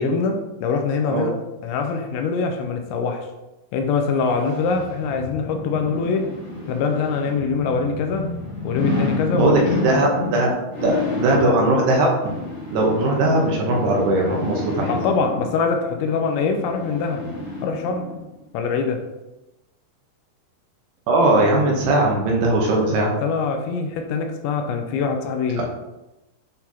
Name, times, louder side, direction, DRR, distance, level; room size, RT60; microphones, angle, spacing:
voice 1, 0.0-1.4 1.6-3.3 3.7-6.3 6.7-8.4 8.6-9.5 14.9-17.2 17.6-18.1 18.5-19.0 23.2-25.6, left 5 dB, 85° left, 5 dB, 2.9 m, -23 dB
sound 1, 4.3-18.2 18.6-18.7, left 3 dB, 55° left, 1.1 m, -30 dB
voice 2, 9.3-10.5 10.8-12.1 12.7-14.9 21.1-23.1 25.6-25.7, right 2 dB, 75° right, -1 dB, 2.7 m, -19 dB
9.1 x 4.3 x 2.8 m, 0.99 s
omnidirectional pair, 5.2 m